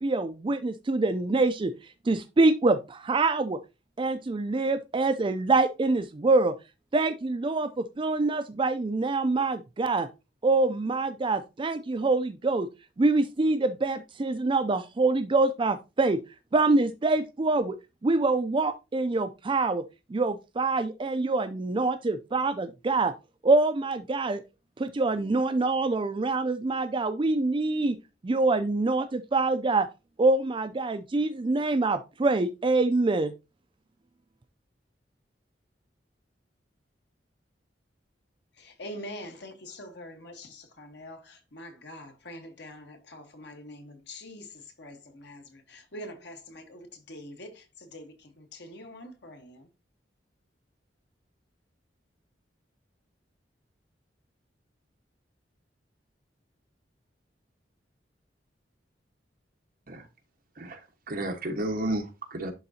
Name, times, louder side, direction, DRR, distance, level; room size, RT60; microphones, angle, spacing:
voice 1, 0.0-1.7 2.1-3.6 4.0-6.5 6.9-10.1 10.4-12.7 13.0-16.2 16.5-17.7 18.0-19.8 20.1-23.1 23.4-24.4 24.8-28.0 28.2-29.9 30.2-33.3, right 3 dB, 30° right, 0.4 m, -25 dB
voice 2, 38.6-49.7, left 1 dB, 70° left, 1.4 m, -44 dB
voice 3, 61.1-62.5, right 1 dB, 55° right, 1.4 m, -32 dB
11.0 x 3.7 x 2.8 m
head